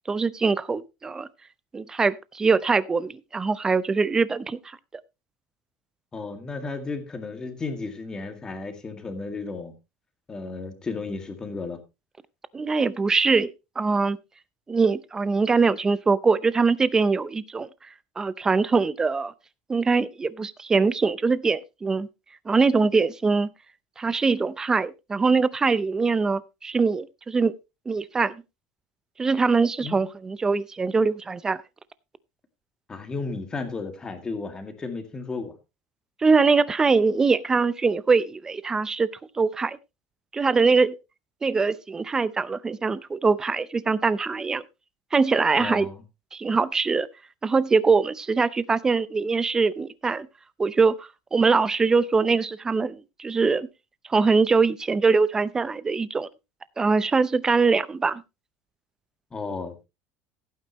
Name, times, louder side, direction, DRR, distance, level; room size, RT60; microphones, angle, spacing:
voice 1, 0.1-1.3 1.7-4.6 12.5-14.2 14.7-17.7 18.2-19.3 19.7-22.1 22.5-23.5 24.0-27.5 27.9-28.4 29.2-31.6 36.2-39.1 39.4-39.8 40.3-41.0 41.4-44.6 45.1-45.9 46.3-47.1 47.4-50.3 50.6-53.7 54.1-56.3 56.8-58.2, right 4 dB, 15° right, 0.5 m, -22 dB
voice 2, 6.1-9.7 10.3-11.8 29.8-30.1 32.9-35.5 45.6-46.0 59.3-59.9, left 3 dB, 15° left, 2.0 m, -33 dB
15.5 x 9.1 x 3.0 m
cardioid pair, 165°, 5 cm